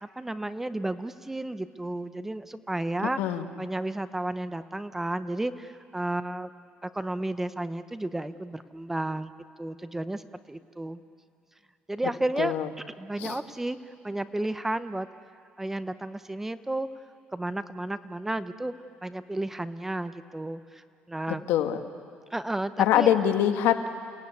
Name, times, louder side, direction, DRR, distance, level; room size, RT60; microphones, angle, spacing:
voice 1, 0.0-3.2 3.6-6.5 6.8-9.3 9.6-11.0 11.9-12.5 13.0-13.8 14.0-15.1 15.6-16.9 17.3-18.7 19.0-20.8 21.1-21.5 22.3-23.1, right 1 dB, 10° right, 12 dB, 0.7 m, -32 dB
voice 2, 12.4-12.7 13.2-13.4 21.5-21.8 22.8-23.9, left 11 dB, 90° left, 7 dB, 1.5 m, -23 dB
29.5 x 17.5 x 9.5 m, 2.4 s
cardioid pair, 140°, 4 cm